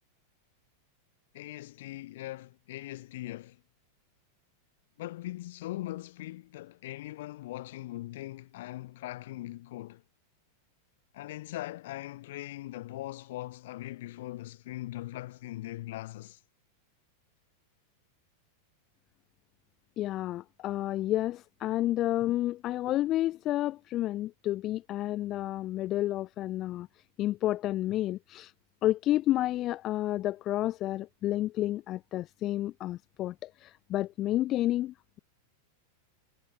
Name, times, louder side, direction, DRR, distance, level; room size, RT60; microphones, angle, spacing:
voice 1, 1.3-3.6 5.0-10.0 11.1-16.4, left 16 dB, 55° left, 1.8 m, -40 dB
voice 2, 20.0-26.9 27.2-28.5 28.8-35.2, left 14 dB, 35° left, 0.4 m, -30 dB
figure-of-eight pair, 90°, 0 cm